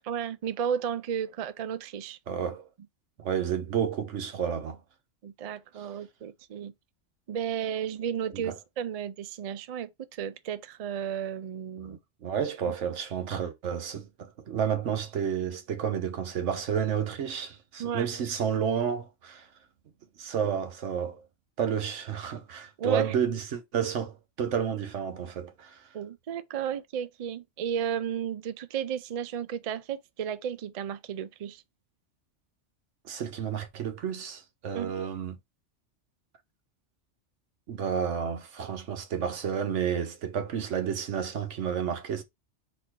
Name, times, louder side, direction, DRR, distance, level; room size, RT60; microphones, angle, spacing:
voice 1, 0.0-2.2 5.2-6.7 7.3-12.0 12.7-12.8 17.8-18.1 22.8-23.1 25.9-31.6 34.7-35.0, right 8 dB, 70° right, 0.3 m, -33 dB
voice 2, 2.3-2.7 3.2-4.8 8.3-8.6 11.8-19.5 20.2-21.2 21.6-25.8 33.0-35.4 37.7-42.2, right 8 dB, 85° right, 1.2 m, -31 dB
4.3 x 2.7 x 4.4 m
omnidirectional pair, 1.2 m